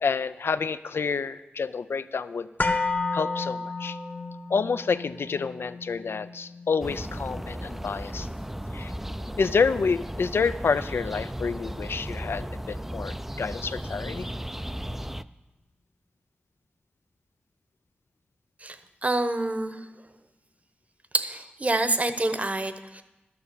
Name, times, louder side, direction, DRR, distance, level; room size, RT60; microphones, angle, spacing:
voice 1, 0.0-2.5 3.1-4.0 4.5-8.3 8.7-8.9 9.3-14.3, left 5 dB, 75° left, 14 dB, 0.4 m, -28 dB
sound 1, 2.6-10.7 11.0-11.1, left 3 dB, 50° left, 1.2 m, -34 dB
sound 2, 6.8-15.2, equal, 5° right, 0.4 m, -35 dB
voice 2, 18.6-19.9 21.1-23.0, right 2 dB, 35° right, 10 dB, 0.9 m, -27 dB
12.5 x 6.9 x 6.8 m, 1.0 s
cardioid pair, 45°, 4 cm